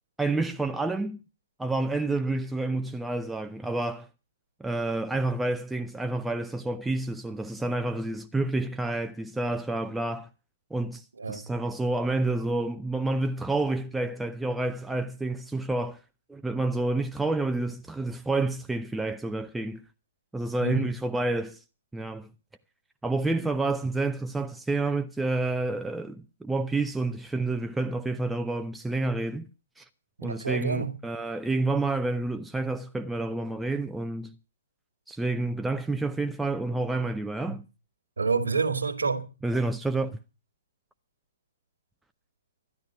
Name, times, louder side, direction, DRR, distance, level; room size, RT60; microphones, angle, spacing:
voice 1, 0.2-1.2 1.6-4.1 4.6-10.3 10.7-16.0 16.3-19.8 20.3-21.6 21.9-22.3 23.0-29.5 29.8-29.9 30.2-34.3 35.1-37.7 39.4-40.2, right 2 dB, 5° right, 0.7 m, -29 dB
voice 2, 30.2-30.9 38.2-39.3, right 4 dB, 85° right, 1.9 m, -28 dB
13.0 x 10.5 x 6.0 m
hypercardioid pair, 125°, 0 cm